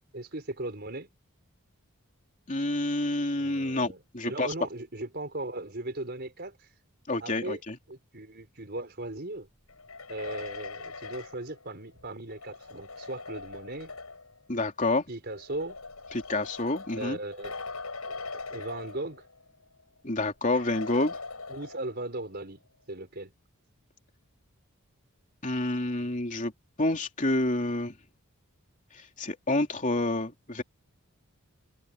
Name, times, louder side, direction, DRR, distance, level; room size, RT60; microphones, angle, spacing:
voice 1, 0.1-1.1 3.4-6.7 7.2-7.6 7.9-9.5 10.1-13.9 15.1-15.8 16.9-17.6 18.1-18.2 18.5-19.2 21.5-22.6 22.9-23.3, right 2 dB, 50° right, 4.7 m, -38 dB
voice 2, 2.5-4.5 7.1-7.7 14.5-15.0 16.1-17.2 20.0-21.2 25.4-26.5 26.8-27.9 29.2-30.6, left 2 dB, 35° left, 3.3 m, -28 dB
sound 1, 9.7-14.4 15.3-19.5 19.8-19.9 20.5-22.1, left 3 dB, 85° left, 6.9 m, -41 dB
head